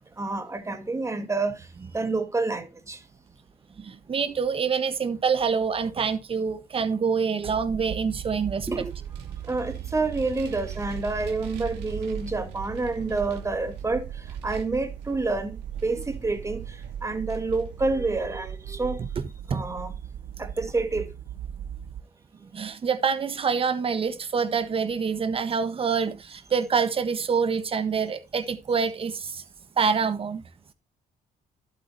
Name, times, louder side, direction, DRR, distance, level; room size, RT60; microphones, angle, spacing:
voice 1, 0.2-1.6 1.9-3.0 8.7-8.9 9.5-14.1 14.4-16.6 17.0-19.0 19.5-19.9 20.4-21.1, right 3 dB, 15° right, 1.7 m, -28 dB
voice 2, 3.8-8.7 19.5-19.7 22.5-29.4 29.8-30.4, right 6 dB, 35° right, 1.3 m, -26 dB
sound 1, 7.4-22.0, right 9 dB, 55° right, 0.7 m, -38 dB
Vehicle, 7.8-18.7, right 8 dB, 85° right, 2.5 m, -46 dB
11.5 x 8.6 x 2.8 m
cardioid pair, 110°, 17 cm